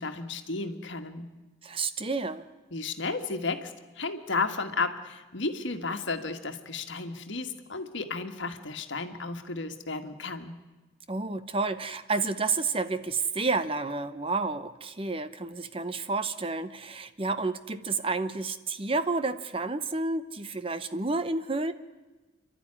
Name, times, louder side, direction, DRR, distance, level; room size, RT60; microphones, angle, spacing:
voice 1, 0.0-1.3 2.7-10.6, left 3 dB, 65° left, 6 dB, 1.6 m, -33 dB
voice 2, 1.6-2.5 11.1-21.7, right 3 dB, 25° right, 12 dB, 0.7 m, -30 dB
29.0 x 12.0 x 9.8 m, 1.2 s
head